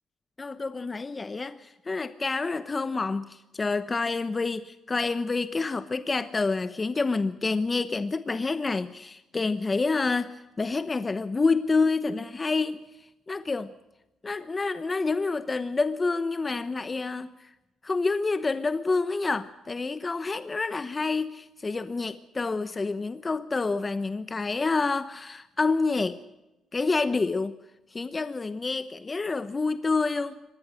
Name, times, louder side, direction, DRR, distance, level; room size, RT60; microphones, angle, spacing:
voice 1, 0.4-12.9 13.3-13.7 14.2-17.5 17.8-26.2 26.7-27.6 27.9-30.4, left 3 dB, 25° left, 12 dB, 1.0 m, -28 dB
25.0 x 19.5 x 6.5 m, 0.99 s
cardioid pair, 90°, 0 cm